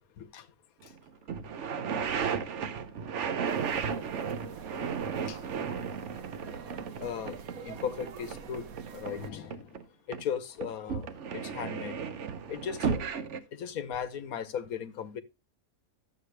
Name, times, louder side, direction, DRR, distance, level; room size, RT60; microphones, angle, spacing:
sound 1, 0.9-1.0 1.3-9.8 10.1-13.4, right 6 dB, 60° right, 1.1 m, -34 dB
sound 2, 3.5-9.3, right 7 dB, 80° right, 1.3 m, -46 dB
voice 1, 7.0-7.4 7.6-8.6 8.9-9.8 10.1-11.1 11.3-12.0 12.5-13.0 13.5-15.2, left 8 dB, 85° left, 1.4 m, -37 dB
11.5 x 7.4 x 3.2 m
omnidirectional pair, 1.5 m